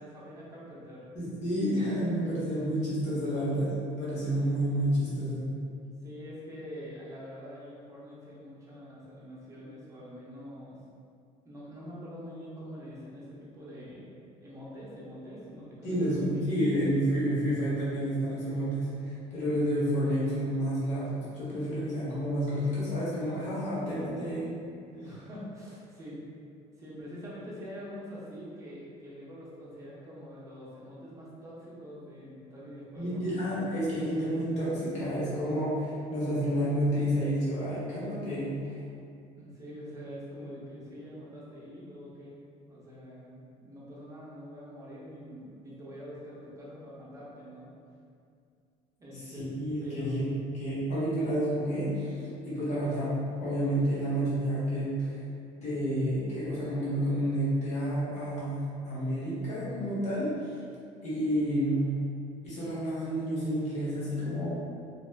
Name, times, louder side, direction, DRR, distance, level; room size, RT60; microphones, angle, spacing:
voice 1, 0.0-1.1 3.3-3.6 6.0-10.8 11.4-14.1 14.4-16.5 25.0-26.2 26.8-33.4 39.3-42.4 42.7-47.7 49.0-49.5 49.8-50.2, equal, 20° right, -7 dB, 0.6 m, -45 dB
voice 2, 1.1-3.7 4.0-5.5 15.8-24.5 33.0-38.8 49.3-50.3 50.6-53.1 53.4-55.2 55.6-58.6 58.8-60.5 61.0-61.9 62.4-64.5, equal, 50° left, -9 dB, 1.0 m, -30 dB
2.9 x 2.3 x 2.2 m, 2.3 s
cardioid pair, 140°, 15 cm